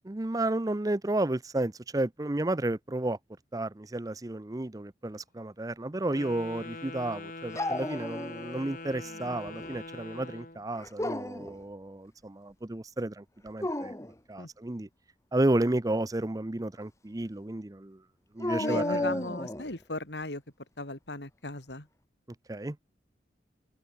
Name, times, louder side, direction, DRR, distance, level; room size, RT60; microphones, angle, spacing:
voice 1, 0.1-3.2 3.5-13.9 14.3-14.9 15.3-18.0 18.3-19.2 22.5-22.8, right 1 dB, 20° right, 0.6 m, -32 dB
Wind instrument woodwind instrument, 6.0-10.6, left 2 dB, 50° left, 5.6 m, -43 dB
Dog, 7.5-8.7 9.1-9.8 10.8-11.5 13.5-14.1 18.4-19.7, left 1 dB, 15° left, 1.7 m, -33 dB
voice 2, 18.6-20.4 20.8-21.9, left 2 dB, 80° left, 4.3 m, -36 dB
head